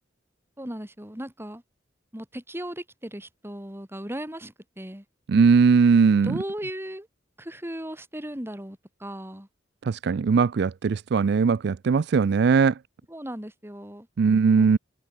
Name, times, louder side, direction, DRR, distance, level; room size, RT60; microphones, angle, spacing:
voice 1, 0.6-1.6 2.1-5.0 6.1-7.1 7.4-9.5 13.1-14.1 14.5-14.8, right 1 dB, 15° right, 4.1 m, -37 dB
voice 2, 5.3-6.4 9.8-12.8 14.2-14.8, right 5 dB, 60° right, 0.4 m, -19 dB
head